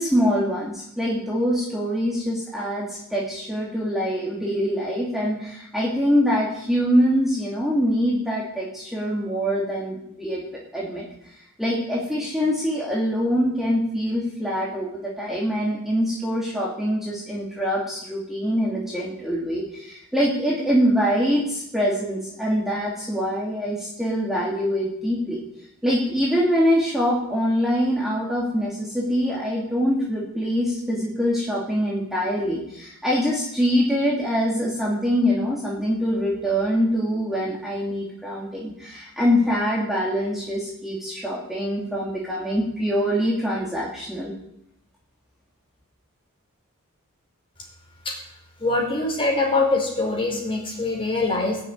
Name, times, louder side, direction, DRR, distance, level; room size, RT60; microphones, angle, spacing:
voice 1, 0.0-25.5 25.8-44.3, equal, ahead, -5 dB, 2.7 m, -24 dB
voice 2, 48.6-51.6, left 2 dB, 25° left, 1 dB, 4.9 m, -23 dB
20.5 x 7.3 x 9.6 m, 0.80 s
head